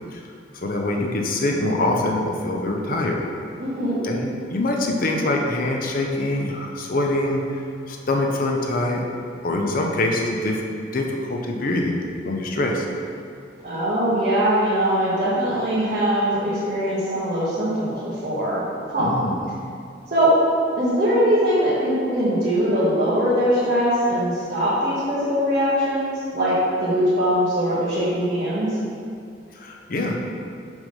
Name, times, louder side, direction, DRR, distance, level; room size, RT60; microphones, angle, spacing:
voice 1, 0.6-3.2 4.0-7.4 7.9-9.0 9.4-10.6 10.9-12.8 19.0-19.3 29.5-30.1, left 2 dB, 50° left, 1 dB, 0.7 m, -24 dB
voice 2, 3.6-4.0 13.6-18.6 18.9-19.1 20.1-20.3 20.8-28.8, equal, 50° right, -12 dB, 1.5 m, -21 dB
6.1 x 3.4 x 5.4 m, 2.4 s
head